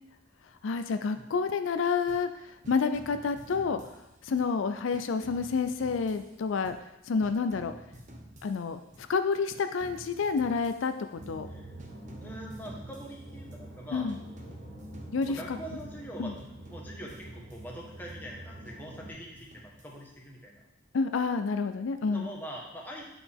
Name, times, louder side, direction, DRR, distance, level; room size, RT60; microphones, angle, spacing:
voice 1, 0.6-2.3 2.7-3.8 4.2-6.8 7.1-7.7 8.4-11.5 13.9-14.2 15.1-15.4 16.2-16.3 20.9-22.3, left 5 dB, 85° left, 9 dB, 0.4 m, -29 dB
sound 1, 2.1-2.4 2.6-4.6 4.9-7.0 7.2-9.2 9.5-11.5 11.8-13.7 14.1-16.1 16.4-18.3 18.6-20.3, equal, 40° right, 0.9 m, -52 dB
sound 2, 11.1-19.1, right 1 dB, 70° right, 2.2 m, -46 dB
voice 2, 12.2-14.1 15.3-16.3 16.7-20.6 22.1-23.1, right 1 dB, 10° left, -2 dB, 1.2 m, -43 dB
8.9 x 5.0 x 3.5 m, 0.89 s
head